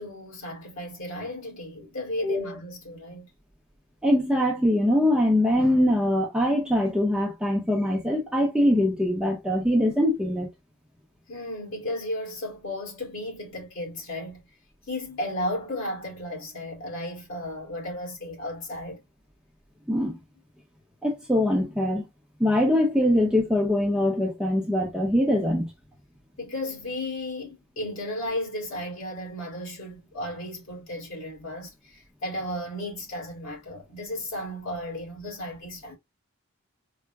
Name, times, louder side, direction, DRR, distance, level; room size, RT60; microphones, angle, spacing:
voice 1, 0.0-3.3 11.3-14.5 14.9-19.0 26.4-36.0, left 1 dB, 70° left, 1.9 m, -34 dB
voice 2, 2.2-2.5 4.0-10.5 19.9-20.2 21.0-22.1 22.4-25.7, left 1 dB, 5° right, 0.7 m, -23 dB
4.6 x 2.1 x 2.3 m
head